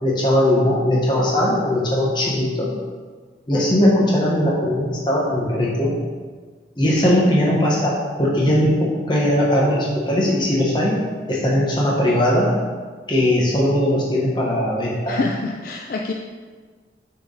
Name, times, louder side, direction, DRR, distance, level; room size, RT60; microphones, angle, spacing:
voice 1, 0.0-2.7 3.5-6.0 6.8-10.9 11.3-12.6 13.1-15.2, left 1 dB, 25° left, -4 dB, 1.2 m, -19 dB
voice 2, 15.1-16.1, left 3 dB, 50° left, 1 dB, 0.3 m, -26 dB
6.8 x 3.5 x 3.9 m, 1.5 s
head